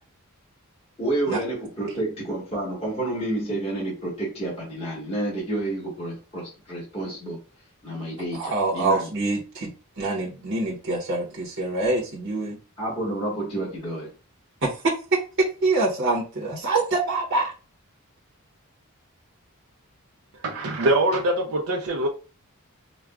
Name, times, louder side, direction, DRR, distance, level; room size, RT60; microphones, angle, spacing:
voice 1, 1.0-7.4 7.8-9.1 12.8-14.1, right 1 dB, 25° left, 1.4 m, -29 dB
voice 2, 8.3-12.6 14.6-17.5, right 3 dB, 55° right, 0.8 m, -25 dB
voice 3, 20.4-22.1, right 1 dB, 85° right, 0.5 m, -23 dB
4.8 x 2.2 x 2.3 m
head